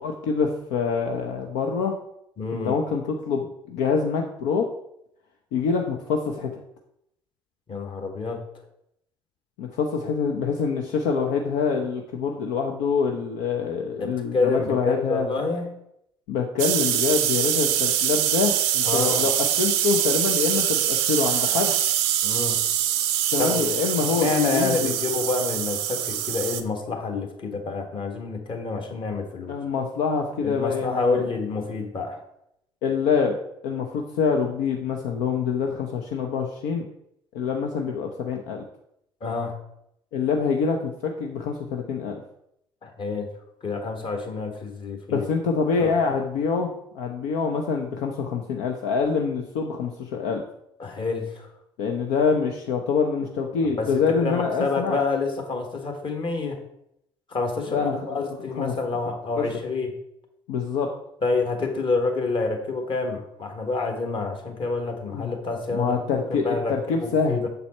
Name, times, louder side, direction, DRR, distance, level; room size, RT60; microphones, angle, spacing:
voice 1, 0.0-1.9 2.6-4.7 5.5-6.5 9.6-15.3 16.3-21.8 23.3-24.9 29.5-31.2 32.8-33.3 33.6-36.9 37.3-38.6 40.1-42.2 45.1-50.4 51.8-55.0 57.7-58.2 58.6-58.7 59.4-59.5 60.5-60.9 65.1-65.4 65.7-67.5, left 5 dB, 70° left, 2 dB, 0.6 m, -25 dB
voice 2, 2.4-2.8 7.7-8.4 14.0-15.7 18.8-19.3 22.2-22.6 23.4-23.7 24.2-29.6 30.4-32.2 39.2-39.6 42.8-43.3 43.6-45.3 45.8-45.9 50.8-51.5 53.6-56.6 57.3-59.9 61.2-67.5, left 3 dB, 40° left, 4 dB, 1.5 m, -28 dB
sound 1, 16.6-26.6, right 11 dB, 75° right, 0.5 m, -24 dB
6.7 x 4.1 x 4.3 m, 0.77 s
hypercardioid pair, 60°, 12 cm